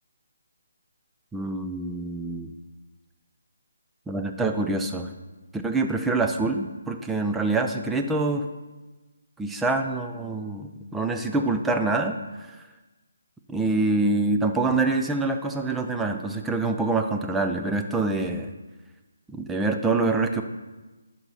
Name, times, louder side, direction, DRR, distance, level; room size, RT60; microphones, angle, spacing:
voice 1, 1.3-2.5 4.1-5.1 5.5-8.5 9.4-12.2 12.5-12.6 13.5-18.5 19.3-20.4, right 3 dB, 5° right, 5 dB, 0.5 m, -25 dB
10.5 x 4.3 x 5.4 m, 1.2 s
hypercardioid pair, 160°, 0 cm